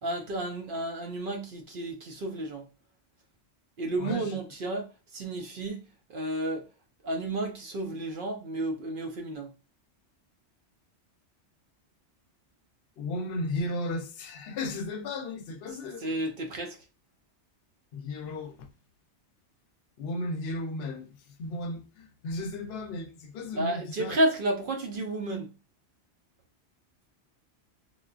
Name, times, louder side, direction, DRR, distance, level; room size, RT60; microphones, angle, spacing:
voice 1, 0.0-2.7 3.8-5.8 6.1-6.7 7.0-9.5 15.7-16.8 23.5-25.5, right 1 dB, 55° right, 0.7 m, -32 dB
voice 2, 13.0-16.0 17.9-18.5 20.0-24.1, left 2 dB, 65° left, 0.8 m, -35 dB
3.7 x 2.4 x 2.4 m
omnidirectional pair, 1.2 m